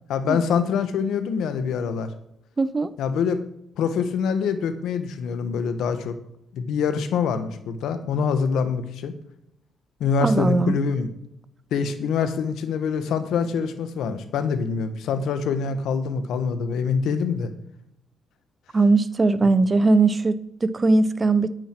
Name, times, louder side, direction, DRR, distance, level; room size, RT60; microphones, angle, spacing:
voice 1, 0.1-2.1 3.0-3.4 3.8-6.1 6.5-9.1 10.0-11.1 11.7-17.5, left 6 dB, 80° left, 1.1 m, -25 dB
voice 2, 2.6-2.9 10.2-10.7 18.7-21.5, right 3 dB, 30° right, 0.7 m, -20 dB
10.5 x 9.0 x 4.5 m
cardioid pair, 90°, 0 cm